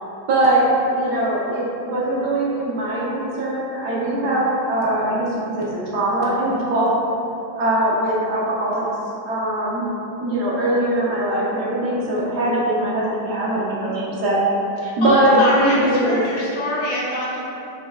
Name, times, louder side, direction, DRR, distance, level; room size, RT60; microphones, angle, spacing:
voice 1, 0.3-5.3 5.6-6.9 7.6-8.8 9.3-9.8 10.2-14.4 15.0-16.2, right 1 dB, 70° right, -6 dB, 1.1 m, -21 dB
voice 2, 14.8-17.4, equal, 65° left, -6 dB, 1.2 m, -24 dB
5.0 x 2.7 x 2.4 m, 2.8 s
omnidirectional pair, 2.0 m